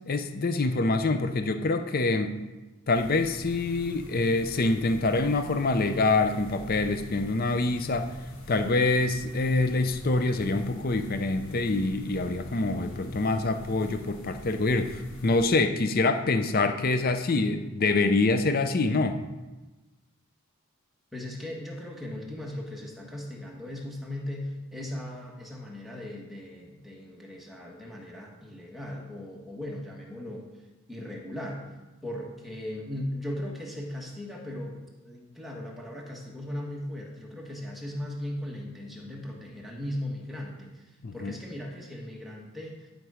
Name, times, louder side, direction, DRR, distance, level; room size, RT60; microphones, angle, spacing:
voice 1, 0.1-2.3 2.9-8.1 8.5-19.2 41.0-41.3, left 3 dB, 40° left, 8 dB, 0.5 m, -25 dB
sound 1, 2.9-15.5, left 1 dB, 60° left, 1.5 m, -43 dB
voice 2, 21.1-30.5 30.9-31.6 32.0-34.8 35.0-42.9, left 1 dB, ahead, -2 dB, 1.3 m, -38 dB
11.0 x 5.3 x 4.9 m, 1.1 s
head